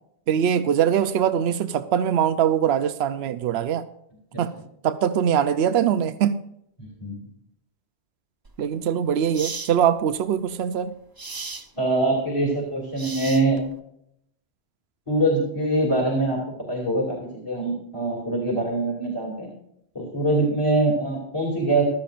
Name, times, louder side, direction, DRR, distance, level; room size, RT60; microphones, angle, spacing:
voice 1, 0.3-3.8 4.4-4.5 4.8-6.4 8.6-10.9, right 9 dB, 75° right, 11 dB, 0.9 m, -22 dB
sound 1, 8.5-8.6 9.3-9.7 11.2-11.7 13.0-13.7, right 4 dB, 25° right, 0.6 m, -35 dB
voice 2, 11.8-13.6 15.1-16.4 16.7-19.5 19.9-21.8, right 2 dB, 30° left, -1 dB, 2.9 m, -23 dB
15.5 x 12.5 x 2.5 m, 0.74 s
omnidirectional pair, 1.1 m